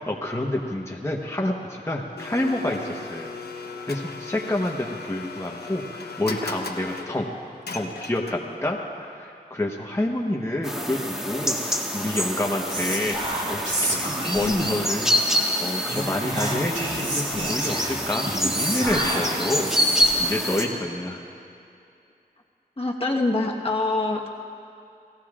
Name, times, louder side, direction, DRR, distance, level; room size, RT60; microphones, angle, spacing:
voice 1, 0.1-7.3 7.7-15.1 15.6-19.7 20.2-21.2, left 1 dB, 15° left, -1 dB, 1.1 m, -28 dB
Domestic sounds home sounds, 2.2-8.7, left 3 dB, 75° left, 1.1 m, -37 dB
sound 1, 10.6-20.6, equal, 5° right, 1.6 m, -26 dB
Whispering, 12.7-15.0 15.8-20.3, right 1 dB, 45° right, 2.7 m, -29 dB
voice 2, 22.8-24.3, left 2 dB, 35° left, -1 dB, 1.4 m, -24 dB
30.0 x 17.5 x 2.5 m, 2.6 s
wide cardioid pair, 95°, 16 cm